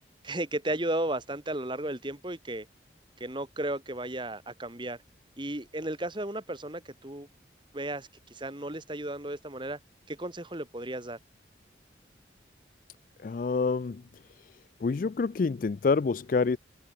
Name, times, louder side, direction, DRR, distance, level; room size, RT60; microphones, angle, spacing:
voice 1, 0.2-2.7 3.2-5.0 5.4-7.3 7.7-9.8 10.1-11.2, right 1 dB, 25° right, 2.3 m, -34 dB
voice 2, 13.2-14.0 14.8-16.6, left 4 dB, 50° left, 0.4 m, -27 dB
head